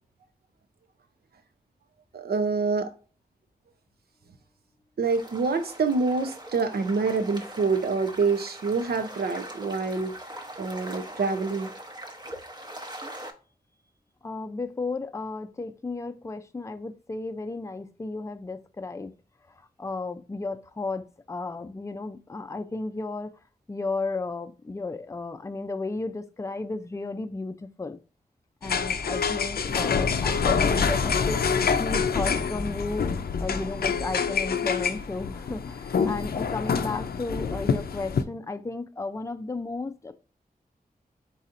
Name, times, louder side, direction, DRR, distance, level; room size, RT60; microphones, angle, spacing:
voice 1, 2.1-2.9 5.0-10.1 10.6-11.7, right 4 dB, 80° right, 0.7 m, -26 dB
sound 1, 5.0-13.3, right 1 dB, 25° right, 0.9 m, -41 dB
voice 2, 14.2-19.1 19.8-23.3 23.7-28.0 28.6-31.4 31.8-40.1, left 3 dB, 20° left, 0.4 m, -34 dB
sound 2, 28.6-38.2, left 6 dB, 80° left, 0.5 m, -26 dB
4.2 x 4.1 x 2.5 m
wide cardioid pair, 65°, 16 cm